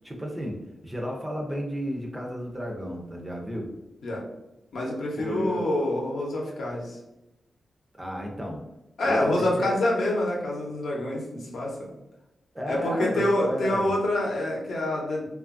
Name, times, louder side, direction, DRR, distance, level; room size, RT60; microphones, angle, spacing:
voice 1, 0.0-0.6 0.8-3.7 5.2-5.7 8.0-8.6 9.0-9.7 12.5-13.9, equal, 10° right, 1 dB, 0.4 m, -33 dB
voice 2, 4.7-7.0 9.0-11.9 12.7-15.3, left 1 dB, 75° left, -2 dB, 0.7 m, -26 dB
2.7 x 2.3 x 2.4 m, 0.94 s
wide cardioid pair, 155°, 0 cm